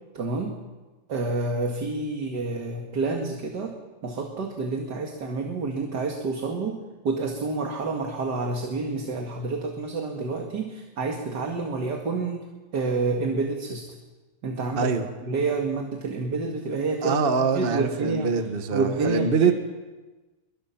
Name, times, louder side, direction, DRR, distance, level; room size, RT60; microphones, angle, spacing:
voice 1, 0.1-0.6 1.1-3.7 4.0-6.8 7.0-12.4 12.7-14.0 14.4-14.9 15.3-17.2 17.5-18.3 18.7-19.5, right 3 dB, 60° right, 2 dB, 2.5 m, -28 dB
voice 2, 17.0-19.5, right 5 dB, 30° right, 7 dB, 1.5 m, -24 dB
27.5 x 23.5 x 5.9 m, 1.2 s
omnidirectional pair, 2.0 m